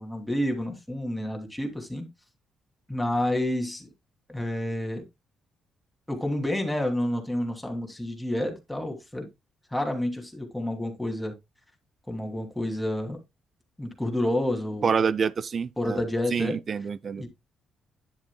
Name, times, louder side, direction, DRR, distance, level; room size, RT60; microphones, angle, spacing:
voice 1, 0.0-2.1 2.9-3.9 4.3-5.0 6.1-9.3 9.7-11.3 12.1-13.2 13.8-15.0 15.8-16.6 17.2-17.3, left 1 dB, 5° left, 2.7 m, -29 dB
voice 2, 14.8-16.0 16.3-17.2, right 6 dB, 45° right, 0.5 m, -27 dB
10.5 x 7.3 x 2.3 m
cardioid pair, 90°, 0 cm